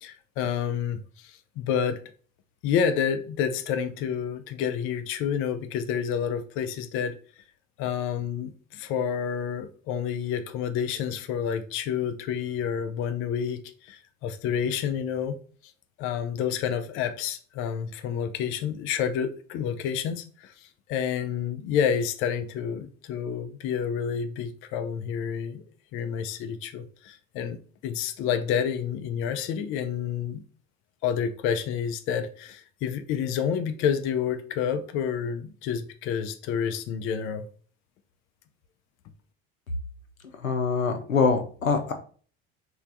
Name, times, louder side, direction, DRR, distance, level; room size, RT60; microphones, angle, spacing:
voice 1, 0.0-2.0 2.6-7.2 7.8-15.4 16.0-25.6 25.9-30.4 31.0-37.5, left 8 dB, 35° left, 0.4 m, -29 dB
voice 2, 40.4-41.9, left 5 dB, 85° left, 0.6 m, -24 dB
3.2 x 2.3 x 3.9 m
figure-of-eight pair, 65°, 40 cm